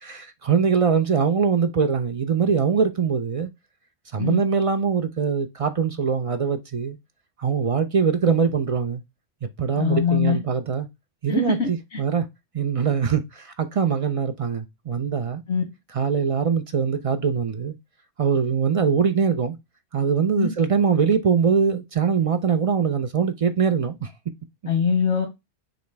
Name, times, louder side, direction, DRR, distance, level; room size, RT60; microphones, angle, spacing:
voice 1, 0.0-3.5 4.1-7.0 7.4-9.0 9.4-10.9 11.2-12.3 12.5-15.4 15.9-17.7 18.2-19.6 19.9-24.1, right 6 dB, 60° right, 0.3 m, -22 dB
voice 2, 9.7-10.4 11.3-12.0 15.5-15.6 20.4-20.5 24.7-25.3, left 6 dB, 85° left, 1.3 m, -22 dB
5.0 x 3.1 x 3.3 m
omnidirectional pair, 1.1 m